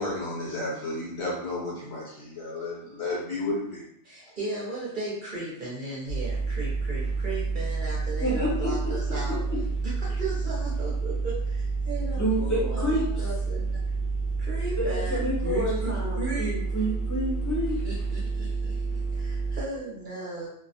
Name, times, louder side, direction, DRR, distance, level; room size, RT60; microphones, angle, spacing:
voice 1, 0.0-3.8, left 2 dB, 65° left, -5 dB, 1.1 m, -32 dB
voice 2, 4.0-9.4 9.8-13.8 14.4-16.5 17.8-20.5, right 2 dB, 50° right, -6 dB, 0.7 m, -36 dB
sound 1, 6.1-19.6, right 4 dB, 85° left, 1.0 m, -29 dB
voice 3, 8.2-8.9 12.1-13.2 14.8-17.8, equal, 20° left, -7 dB, 0.7 m, -29 dB
2.4 x 2.0 x 2.7 m, 0.71 s
omnidirectional pair, 1.2 m